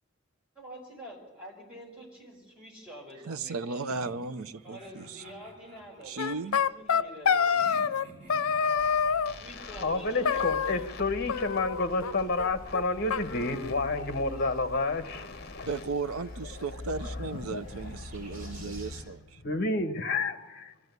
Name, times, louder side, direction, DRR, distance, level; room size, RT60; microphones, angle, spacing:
voice 1, 0.5-4.0 4.6-7.8 9.4-10.9, equal, 5° right, 4.8 m, -47 dB
voice 2, 3.2-5.2 6.0-6.6 15.7-19.4, right 4 dB, 85° right, 0.7 m, -35 dB
sound 1, 3.9-6.6 7.5-10.1, right 1 dB, 35° right, 5.4 m, -52 dB
sound 2, 6.2-8.0 8.3-9.3 10.2-11.0 11.3-12.1 12.4-12.5 12.7-12.8 13.1-14.1, left 6 dB, 90° left, 0.6 m, -27 dB
sound 3, 8.8-19.0, left 1 dB, 65° right, 6.0 m, -45 dB
voice 3, 9.2-15.7 17.0-18.7 19.4-20.7, left 3 dB, 50° left, 1.1 m, -31 dB
24.0 x 13.5 x 8.1 m
head